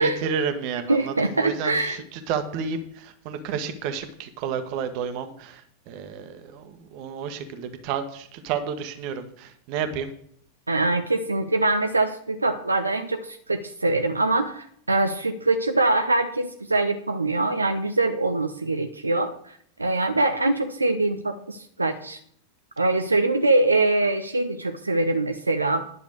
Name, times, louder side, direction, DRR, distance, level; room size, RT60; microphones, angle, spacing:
voice 1, 0.0-10.1, right 6 dB, 45° right, 9 dB, 1.4 m, -31 dB
voice 2, 0.9-2.0 10.7-22.2 22.8-25.8, right 2 dB, 80° right, 7 dB, 0.6 m, -23 dB
10.5 x 6.7 x 6.4 m, 0.65 s
figure-of-eight pair, 90°, 0 cm